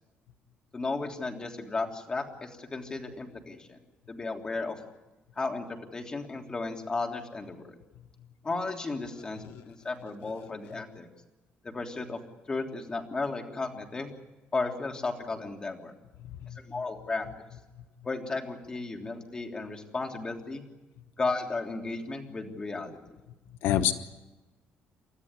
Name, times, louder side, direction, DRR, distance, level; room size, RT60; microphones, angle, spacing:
voice 1, 0.7-3.8 4.1-4.7 5.4-5.7 5.9-7.7 8.4-11.1 11.6-12.2 12.5-14.1 14.5-15.9 16.6-17.3 18.0-20.6 21.2-23.0, left 3 dB, 20° left, 3 dB, 3.3 m, -34 dB
voice 2, 16.2-16.6 23.6-23.9, left 11 dB, 90° left, 10 dB, 1.1 m, -28 dB
30.0 x 13.5 x 9.8 m, 1.1 s
cardioid pair, 140°, 4 cm